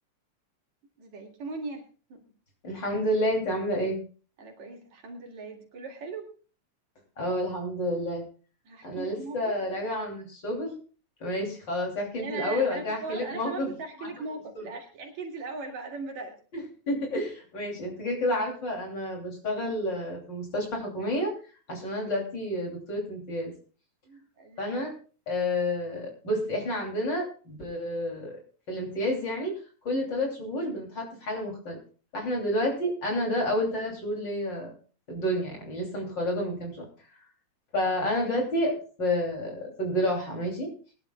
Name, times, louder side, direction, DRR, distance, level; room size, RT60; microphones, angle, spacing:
voice 1, 1.0-2.2 4.4-6.3 8.7-9.6 12.2-16.4 24.1-24.8, right 3 dB, 70° right, 1 dB, 3.5 m, -39 dB
voice 2, 2.6-4.0 7.2-8.2 8.8-10.8 11.2-13.7 14.0-14.1 14.5-14.7 16.9-21.3 21.7-23.5 24.6-24.9 25.3-28.4 28.7-29.5 29.8-31.8 32.1-34.7 35.1-36.9 37.7-40.7, left 1 dB, 40° left, 0 dB, 3.4 m, -30 dB
21.5 x 11.5 x 2.3 m, 0.38 s
omnidirectional pair, 3.3 m